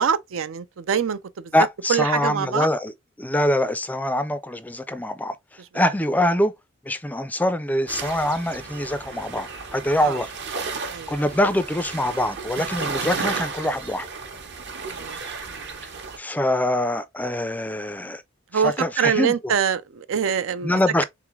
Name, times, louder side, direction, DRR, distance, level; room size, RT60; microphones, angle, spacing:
voice 1, 0.0-1.5 1.9-2.7 10.0-10.2 10.9-11.2 14.8-15.2 15.5-15.8 18.5-21.0, right 7 dB, 75° right, 0.5 m, -25 dB
voice 2, 1.5-2.9 3.2-5.4 5.7-6.5 6.9-10.3 11.1-14.1 16.2-18.2 18.5-19.5 20.6-21.0, left 1 dB, 10° left, 0.4 m, -24 dB
sound 1, 7.9-16.2, right 4 dB, 55° right, 0.9 m, -33 dB
3.8 x 3.6 x 3.1 m
head